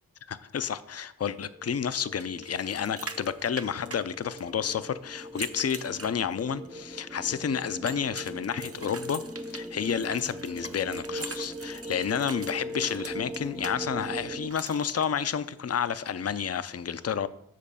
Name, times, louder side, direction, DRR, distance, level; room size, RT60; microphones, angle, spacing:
voice 1, 0.3-9.2 9.5-17.3, left 7 dB, 45° left, 0.5 m, -30 dB
sound 1, 1.4-14.5, right 1 dB, 10° right, 0.5 m, -40 dB
sound 2, 2.2-4.7 5.2-6.7 7.9-13.7 14.5-15.1, right 3 dB, 40° right, 0.7 m, -43 dB
7.6 x 4.1 x 6.8 m
wide cardioid pair, 45°, 36 cm